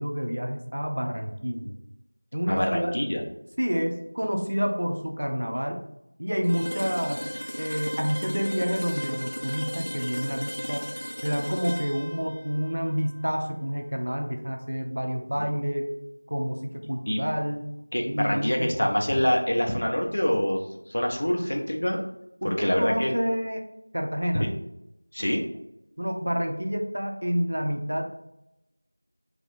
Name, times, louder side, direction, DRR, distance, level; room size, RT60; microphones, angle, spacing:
voice 1, 0.0-1.7 2.3-3.1 3.6-5.8 6.2-7.3 7.6-10.9 11.2-15.9 16.3-17.8 18.1-18.9 22.4-23.6 23.9-24.5 26.0-28.1, equal, 45° right, 3 dB, 0.5 m, -29 dB
voice 2, 2.5-3.2 15.3-15.4 17.1-17.2 17.9-20.6 20.9-22.0 22.4-23.1 24.3-24.5 25.1-25.5, equal, 25° left, 1 dB, 0.3 m, -25 dB
sound 1, 6.4-14.3, equal, 85° left, 0.5 m, -36 dB
2.8 x 2.3 x 4.2 m, 0.83 s
figure-of-eight pair, 180°, 0 cm